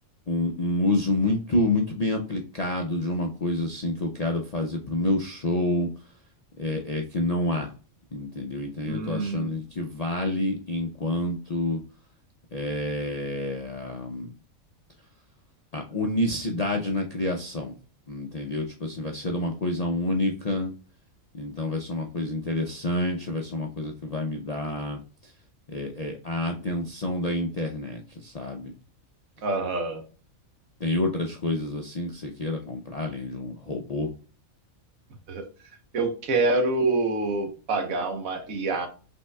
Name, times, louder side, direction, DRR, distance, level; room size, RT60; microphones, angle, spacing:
voice 1, 0.3-5.9 6.6-7.7 8.1-11.8 12.5-14.3 15.7-17.8 18.1-20.7 21.3-25.3 25.7-28.7 30.8-34.1, left 1 dB, 50° left, 0.4 m, -28 dB
voice 2, 8.9-9.5 29.4-30.0 35.3-35.5 35.9-38.9, right 3 dB, 75° right, 1.4 m, -26 dB
5.8 x 3.6 x 2.2 m
omnidirectional pair, 1.4 m